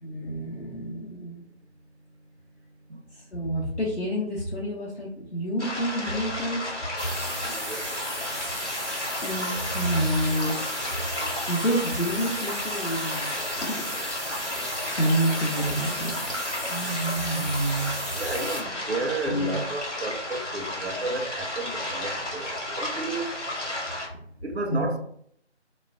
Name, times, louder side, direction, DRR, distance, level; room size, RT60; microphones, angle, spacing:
voice 1, 0.0-1.4 3.1-7.2 8.5-10.6 11.5-13.8 14.4-16.1 16.7-18.0 19.3-19.6 24.7-24.8, right 1 dB, 70° left, 0.8 m, -29 dB
sound 1, 5.6-24.1, left 1 dB, 90° left, 1.3 m, -33 dB
sound 2, 7.0-18.6, equal, ahead, 0.6 m, -35 dB
voice 2, 7.4-7.8 18.2-23.3 24.4-25.0, right 2 dB, 65° right, 0.5 m, -32 dB
2.3 x 2.1 x 3.4 m
figure-of-eight pair, 175°, 35 cm